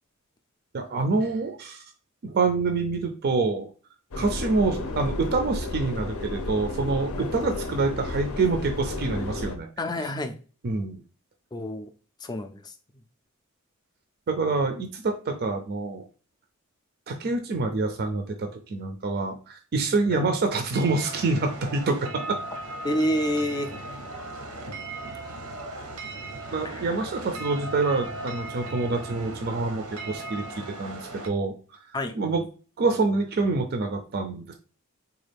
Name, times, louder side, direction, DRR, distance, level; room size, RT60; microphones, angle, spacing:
voice 1, 0.7-1.8 2.2-3.7 4.2-9.7 10.0-10.1 10.6-11.0 14.3-16.0 17.1-22.4 26.5-30.4 30.8-31.5 32.2-32.4 32.8-34.5, right 3 dB, 45° right, 5 dB, 0.4 m, -26 dB
Subway metro underground, 4.1-9.6, left 2 dB, 70° left, 0.6 m, -32 dB
voice 2, 9.8-10.3 11.5-11.9 12.2-12.7 20.1-20.3 22.8-23.7 26.6-26.8 31.9-32.1, equal, 20° left, 7 dB, 0.4 m, -28 dB
sound 1, 20.7-31.3, right 2 dB, 90° right, 0.8 m, -37 dB
4.0 x 2.4 x 3.3 m, 0.37 s
head